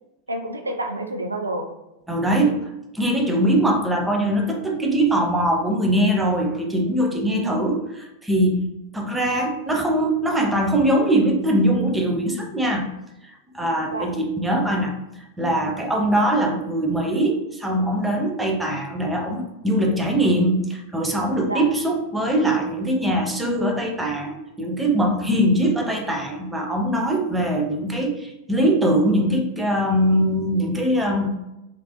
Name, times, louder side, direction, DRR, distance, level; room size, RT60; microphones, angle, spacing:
voice 1, 0.3-1.7 7.3-7.6 13.9-14.1 21.5-21.6, right 1 dB, 80° right, 4 dB, 0.4 m, -28 dB
voice 2, 2.1-2.6 2.9-7.8 8.2-12.9 13.5-14.9 15.4-31.3, right 1 dB, 5° right, 1 dB, 0.5 m, -22 dB
3.0 x 2.5 x 2.9 m, 0.93 s
figure-of-eight pair, 90°, 0 cm